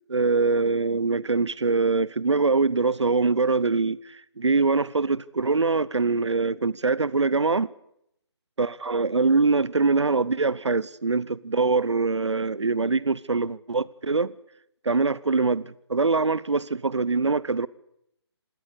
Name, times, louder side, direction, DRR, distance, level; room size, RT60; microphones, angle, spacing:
voice 1, 0.1-7.7 8.6-14.3 14.8-17.7, right 4 dB, 80° right, 0.9 m, -23 dB
27.0 x 20.5 x 8.5 m
figure-of-eight pair, 150°, 14 cm